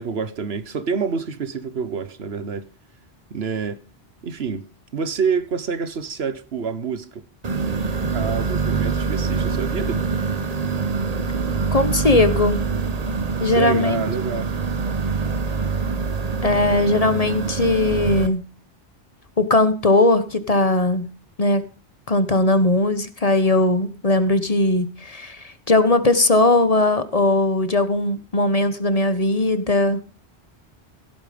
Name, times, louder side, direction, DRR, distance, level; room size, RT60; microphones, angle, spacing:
voice 1, 0.0-2.7 3.3-3.8 4.2-4.6 4.9-7.2 8.1-10.1 13.4-14.5, right 5 dB, 70° right, 1.3 m, -27 dB
sound 1, 7.4-18.3, right 5 dB, 40° right, 1.1 m, -25 dB
voice 2, 11.7-12.6 13.4-14.1 16.4-18.4 19.4-21.1 21.4-21.6 22.1-30.0, left 2 dB, 35° left, 1.2 m, -19 dB
16.5 x 8.9 x 5.2 m
omnidirectional pair, 1.1 m